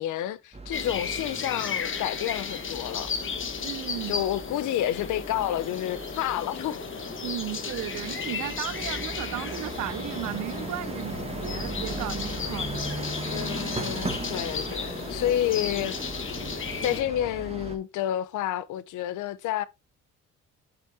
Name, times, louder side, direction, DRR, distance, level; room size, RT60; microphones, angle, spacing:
voice 1, 0.0-3.1 4.1-6.8 13.3-16.0 16.8-19.7, left 12 dB, 80° left, 0.7 m, -29 dB
sound 1, 0.5-17.8, right 2 dB, 20° right, 1.5 m, -38 dB
sound 2, 0.7-17.0, left 6 dB, 40° left, 1.2 m, -34 dB
voice 2, 3.6-4.2 7.2-13.1, right 14 dB, 70° right, 0.6 m, -35 dB
7.3 x 5.7 x 3.4 m
cardioid pair, 90°, 30 cm